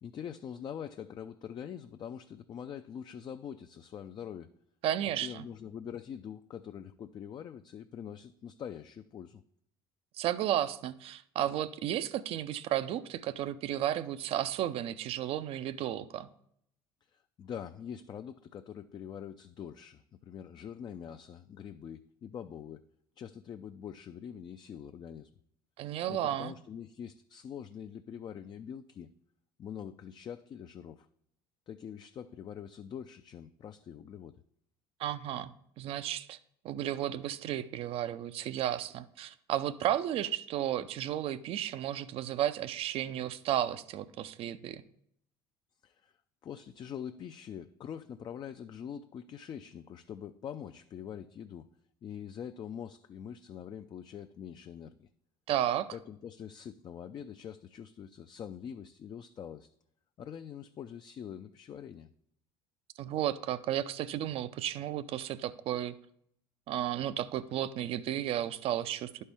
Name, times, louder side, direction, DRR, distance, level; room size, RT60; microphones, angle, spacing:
voice 1, 0.0-4.5 5.2-9.4 17.1-22.9 23.2-25.3 26.1-29.1 29.6-31.1 31.7-34.4 45.8-46.1 46.4-51.7 52.0-55.1 55.9-59.7 60.2-62.1, left 8 dB, 40° left, 8 dB, 0.4 m, -44 dB
voice 2, 4.8-5.4 10.2-16.3 25.8-26.5 35.0-35.5 35.8-36.4 36.6-44.8 55.5-55.9 63.0-66.0 66.7-69.2, right 11 dB, 55° right, 16 dB, 0.5 m, -33 dB
11.0 x 4.4 x 3.4 m, 0.71 s
hypercardioid pair, 65°, 12 cm